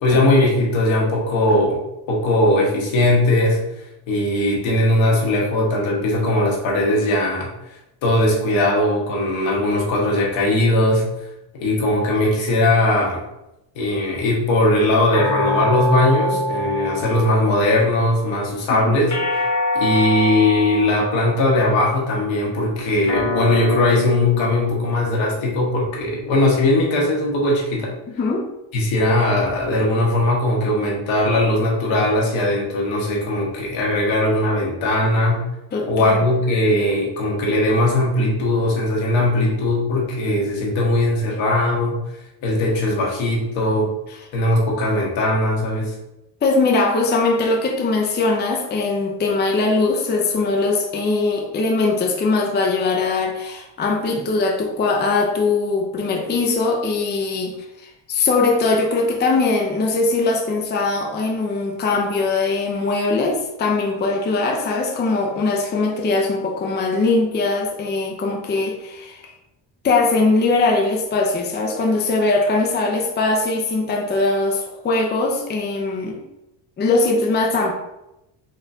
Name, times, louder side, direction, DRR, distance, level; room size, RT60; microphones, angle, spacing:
voice 1, 0.0-1.8 2.1-3.6 4.1-7.5 8.0-11.0 11.5-13.2 13.7-19.1 19.7-27.9 28.7-35.4 35.9-42.0 42.4-43.9 44.3-45.9, left 1 dB, 80° left, -3 dB, 1.4 m, -19 dB
sound 1, 15.1-17.7 19.1-21.6 23.1-25.7, left 2 dB, 40° left, 1.1 m, -25 dB
voice 2, 35.7-36.2 46.4-69.3 69.8-76.2 76.8-77.7, left 3 dB, 25° left, 1 dB, 0.5 m, -21 dB
4.2 x 3.1 x 2.7 m, 0.92 s
cardioid pair, 110°, 46 cm